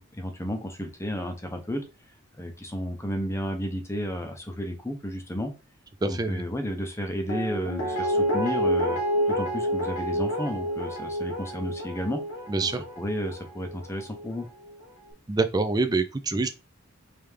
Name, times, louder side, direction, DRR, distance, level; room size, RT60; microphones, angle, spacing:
voice 1, 0.0-1.8 2.4-5.5 6.0-9.0 9.3-12.2 12.6-14.5, equal, 10° left, 0.7 m, -32 dB
voice 2, 6.0-6.4 12.5-12.8 15.3-16.5, right 3 dB, 15° right, 0.3 m, -25 dB
Guitar, 7.3-14.3 14.6-14.7, equal, 80° left, 1.2 m, -29 dB
3.4 x 3.3 x 3.2 m
head